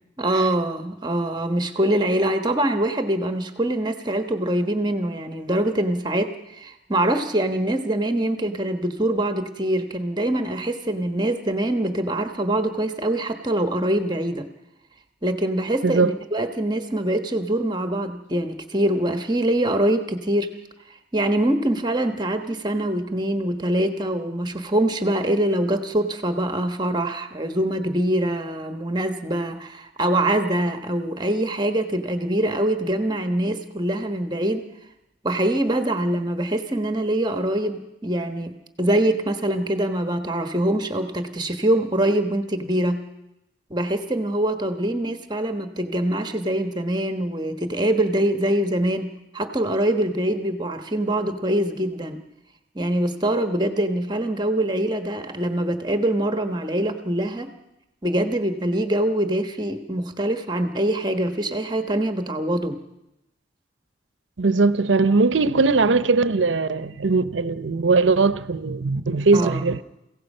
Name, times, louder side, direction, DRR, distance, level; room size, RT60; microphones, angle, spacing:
voice 1, 0.2-14.5 15.2-20.5 21.1-34.6 35.2-38.5 38.8-43.0 43.7-52.2 52.7-57.5 58.0-62.8 69.3-69.6, right 1 dB, 25° right, 1.2 m, -24 dB
voice 2, 15.8-16.2 64.4-69.8, right 3 dB, 90° right, 0.7 m, -20 dB
29.5 x 16.0 x 5.5 m
head